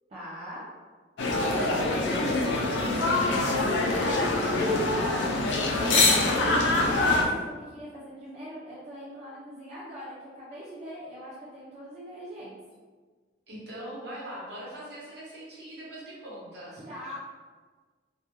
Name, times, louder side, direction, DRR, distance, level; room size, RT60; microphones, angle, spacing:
voice 1, 0.1-0.6 3.2-4.5 4.9-12.6 16.7-17.2, equal, 35° right, -9 dB, 0.5 m, -41 dB
sound 1, 1.2-7.2, left 2 dB, 80° left, 0.4 m, -24 dB
voice 2, 1.6-2.8 13.5-16.7, right 1 dB, 65° right, -6 dB, 0.9 m, -41 dB
2.2 x 2.2 x 2.9 m, 1.4 s
head